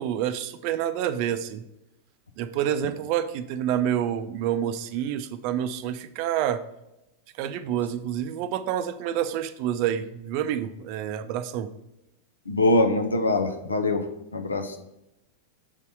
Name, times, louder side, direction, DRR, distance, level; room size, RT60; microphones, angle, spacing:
voice 1, 0.0-1.6 2.4-6.6 7.4-11.7, right 10 dB, 45° right, 12 dB, 0.5 m, -28 dB
voice 2, 12.5-14.0 14.3-14.8, left 2 dB, 75° left, 6 dB, 0.7 m, -23 dB
7.3 x 4.1 x 4.7 m, 0.90 s
figure-of-eight pair, 90°, 0 cm